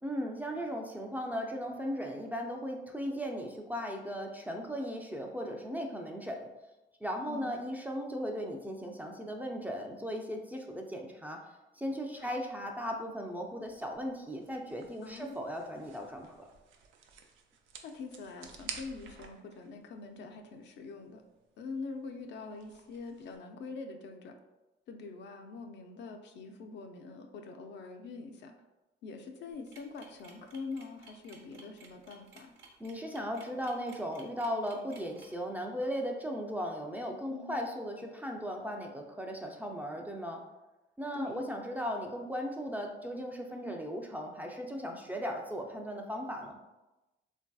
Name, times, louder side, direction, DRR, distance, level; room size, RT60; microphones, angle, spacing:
voice 1, 0.0-6.5 7.0-11.4 11.8-16.5 32.8-40.4 41.0-46.5, equal, 10° right, 1 dB, 0.3 m, -37 dB
sound 1, 12.1-23.4, right 6 dB, 80° right, 0.4 m, -52 dB
voice 2, 15.0-15.4 17.8-21.2 21.6-24.3 24.9-28.5 29.0-32.5 37.3-37.7 41.1-41.5, left 4 dB, 65° left, 4 dB, 0.4 m, -44 dB
sound 2, 29.5-35.3, right 4 dB, 55° right, 0.8 m, -56 dB
3.1 x 2.6 x 2.2 m, 1.0 s
cardioid pair, 90°, 20 cm